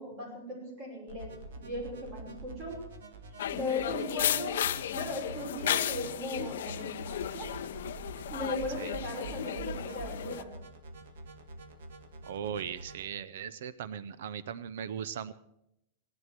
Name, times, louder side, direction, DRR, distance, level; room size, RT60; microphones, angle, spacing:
voice 1, 0.0-2.8 3.5-7.5 8.3-10.5, left 1 dB, 30° right, 0 dB, 5.5 m, -38 dB
sound 1, 1.1-13.1, right 2 dB, 80° right, 1.9 m, -46 dB
sound 2, 3.4-10.4, left 11 dB, 75° left, 0.6 m, -34 dB
voice 2, 12.3-15.3, right 8 dB, 65° right, 16 dB, 0.6 m, -38 dB
16.5 x 11.5 x 6.0 m, 0.81 s
supercardioid pair, 180°, 0 cm